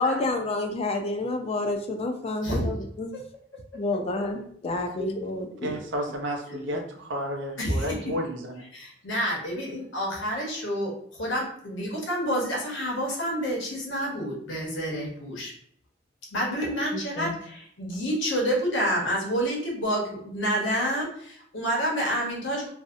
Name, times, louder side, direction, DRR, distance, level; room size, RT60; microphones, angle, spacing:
voice 1, 0.0-3.1 3.7-5.8 6.5-6.8 16.9-17.3, left 2 dB, 35° left, 4 dB, 0.3 m, -29 dB
voice 2, 5.6-8.6, equal, 80° right, 3 dB, 0.5 m, -32 dB
voice 3, 7.6-8.2 8.7-15.5 16.3-22.7, equal, 90° left, -2 dB, 0.9 m, -28 dB
2.6 x 2.0 x 2.4 m, 0.64 s
head